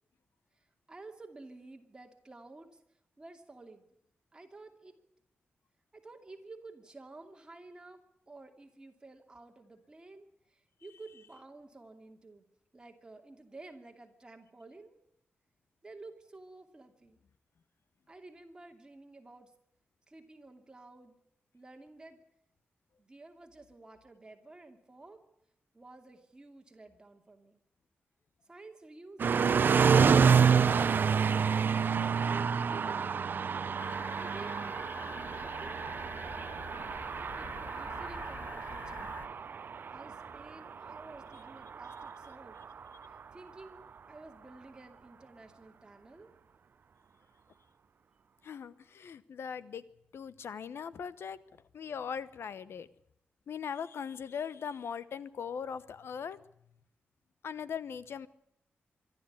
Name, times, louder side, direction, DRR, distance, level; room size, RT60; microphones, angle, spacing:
voice 1, 0.5-2.8 3.2-3.9 4.3-5.0 5.9-12.4 12.7-15.0 15.8-17.2 18.1-19.5 20.1-21.2 21.5-22.2 23.0-25.2 25.7-27.6 28.4-30.2 32.7-35.9 37.4-39.3 39.9-42.6 43.1-46.3, right 2 dB, 20° right, 4 dB, 2.7 m, -52 dB
sound 1, 29.2-43.2, right 6 dB, 55° right, 0.7 m, -29 dB
sound 2, 33.8-39.3, left 4 dB, 45° left, 1.3 m, -47 dB
voice 2, 48.4-49.8 50.1-51.4 51.7-52.9 53.5-56.4 57.4-58.3, left 7 dB, 80° left, 16 dB, 1.0 m, -39 dB
25.0 x 12.5 x 9.7 m, 0.78 s
wide cardioid pair, 160°, 4 cm